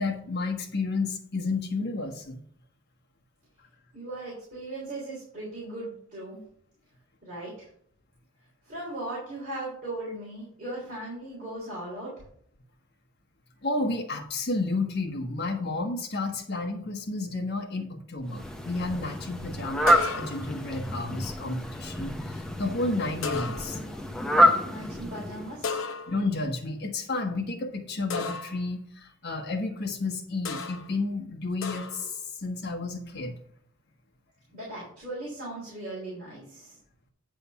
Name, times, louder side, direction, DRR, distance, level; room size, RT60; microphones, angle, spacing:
voice 1, 0.0-2.4 13.6-23.8 26.1-33.3, left 3 dB, 45° left, 1 dB, 1.3 m, -31 dB
voice 2, 3.9-6.4 7.2-7.7 8.6-12.2 24.6-25.8 34.5-36.8, right 2 dB, 40° right, -7 dB, 3.5 m, -38 dB
Fowl, 18.3-25.7, equal, 5° left, 0.6 m, -28 dB
sound 1, 19.9-20.6 23.2-24.0 25.6-26.4 28.1-28.7 30.5-30.9 31.6-32.1, left 5 dB, 60° left, 0.8 m, -34 dB
9.6 x 3.5 x 6.9 m, 0.62 s
head